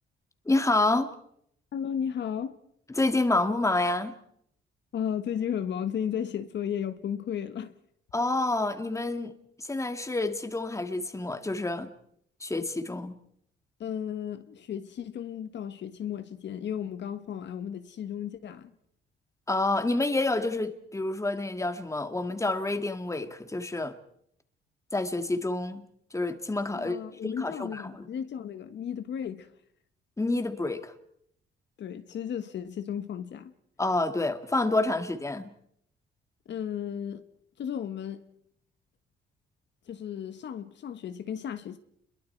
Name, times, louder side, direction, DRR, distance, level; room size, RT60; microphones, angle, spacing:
voice 1, 0.5-1.1 3.0-4.2 8.1-9.3 9.6-11.9 12.4-13.2 19.5-24.0 24.9-25.9 26.1-27.0 27.2-28.1 30.2-30.9 33.8-35.5, left 2 dB, 15° left, 2.1 m, -28 dB
voice 2, 1.7-2.5 4.9-7.7 13.8-18.7 26.7-29.5 31.8-33.5 36.4-37.2 37.6-38.2 39.9-41.8, left 8 dB, 65° left, 1.4 m, -34 dB
30.0 x 22.5 x 4.6 m
cardioid pair, 90°, 20 cm